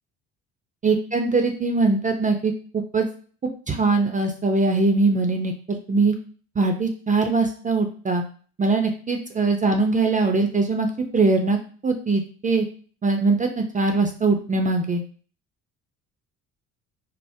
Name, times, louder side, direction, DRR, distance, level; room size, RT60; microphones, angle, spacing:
voice 1, 0.8-3.1 3.7-6.1 6.6-8.2 8.6-10.9 11.1-11.6 11.8-12.7 13.0-15.0, right 3 dB, 20° right, 4 dB, 0.4 m, -21 dB
3.4 x 2.0 x 2.6 m, 0.42 s
hypercardioid pair, 65°, 36 cm